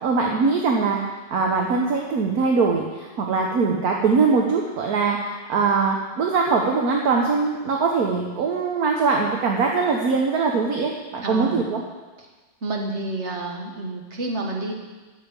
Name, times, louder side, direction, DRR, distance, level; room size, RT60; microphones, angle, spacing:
voice 1, 0.0-1.0 1.3-11.8, right 4 dB, 55° right, 0 dB, 1.4 m, -22 dB
voice 2, 11.2-11.7 12.2-12.3 12.6-14.8, right 2 dB, 40° right, 0 dB, 1.6 m, -29 dB
9.0 x 7.4 x 8.7 m, 1.3 s
omnidirectional pair, 2.1 m